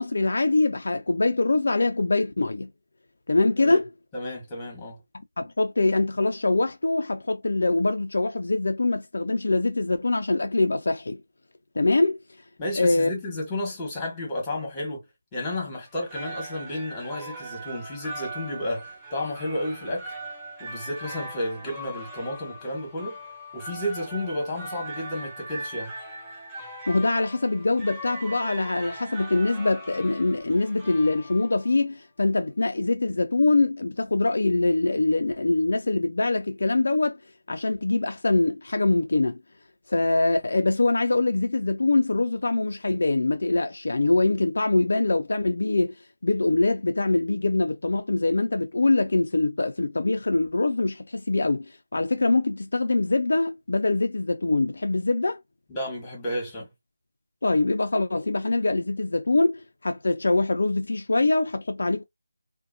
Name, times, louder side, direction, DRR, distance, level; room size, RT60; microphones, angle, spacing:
voice 1, 0.0-2.7 3.3-3.9 5.4-11.2 11.8-12.2 12.8-13.1 26.9-37.2 37.5-39.4 39.9-45.9 46.2-51.7 51.9-55.4 57.4-62.0, left 2 dB, 65° left, 0.4 m, -23 dB
voice 2, 4.1-5.0 12.6-20.1 20.6-23.2 23.5-25.9 55.7-56.7, left 1 dB, 15° left, 1.2 m, -32 dB
sound 1, 15.9-31.8, right 1 dB, 10° right, 0.6 m, -40 dB
2.6 x 2.1 x 2.6 m
figure-of-eight pair, 160°, 0 cm